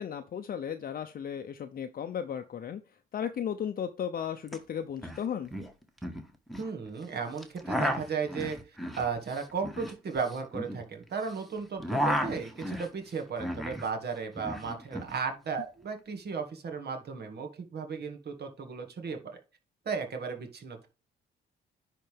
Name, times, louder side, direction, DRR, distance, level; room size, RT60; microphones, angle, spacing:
voice 1, 0.0-2.8 3.1-5.5, left 8 dB, 45° left, 8 dB, 0.7 m, -35 dB
sound 1, 4.5-4.6 4.8-5.2 5.5-6.7 7.4-11.3 11.6-13.9 14.2-15.1, equal, ahead, 1.5 m, -33 dB
voice 2, 6.6-19.4 19.9-20.9, right 5 dB, 55° right, 4 dB, 2.1 m, -35 dB
10.0 x 4.0 x 3.5 m, 0.33 s
cardioid pair, 90°, 20 cm